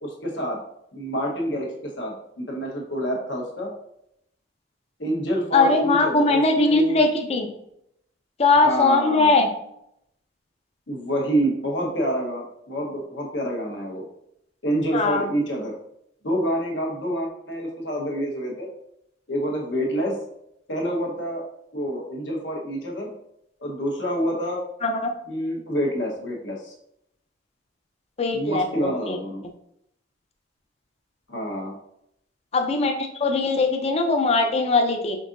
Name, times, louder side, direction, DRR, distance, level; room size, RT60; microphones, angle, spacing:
voice 1, 0.0-0.6 0.9-3.7 5.0-7.0 8.6-9.4 10.9-14.1 14.6-15.7 16.2-18.7 19.3-20.1 20.7-21.4 21.7-23.1 23.6-24.6 25.3-26.7 28.3-29.4 31.3-31.7, equal, 75° left, -1 dB, 1.2 m, -27 dB
voice 2, 5.5-7.5 8.4-9.5 14.9-15.2 24.8-25.1 28.2-29.2 32.5-35.2, left 3 dB, 35° left, 4 dB, 0.5 m, -20 dB
5.2 x 3.7 x 2.6 m, 0.77 s
head